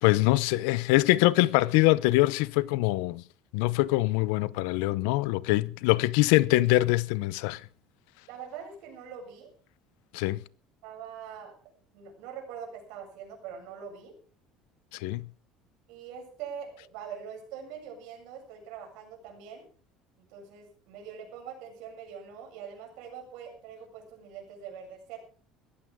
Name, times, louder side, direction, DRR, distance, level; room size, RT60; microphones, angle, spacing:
voice 1, 0.0-3.2 3.5-7.6 10.1-10.4 15.0-15.3, left 19 dB, 90° left, 0.7 m, -24 dB
voice 2, 8.3-9.5 10.8-11.5 11.9-14.1 15.9-19.6 20.2-25.2, right 7 dB, 70° right, 7.7 m, -43 dB
20.5 x 15.5 x 3.7 m
cardioid pair, 160°, 0 cm